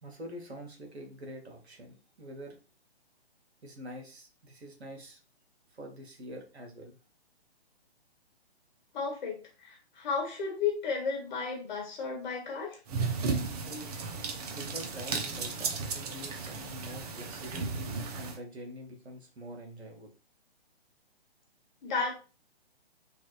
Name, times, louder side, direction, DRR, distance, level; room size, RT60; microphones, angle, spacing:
voice 1, 0.0-2.6 3.6-5.2 5.7-7.0 13.6-13.9 14.5-20.1, equal, 80° right, 2 dB, 1.3 m, -45 dB
voice 2, 8.9-12.8 21.8-22.1, left 5 dB, 45° left, 1 dB, 1.5 m, -33 dB
sound 1, 12.9-18.4, right 4 dB, 40° right, 0.6 m, -34 dB
3.2 x 2.5 x 3.0 m, 0.34 s
figure-of-eight pair, 140°, 32 cm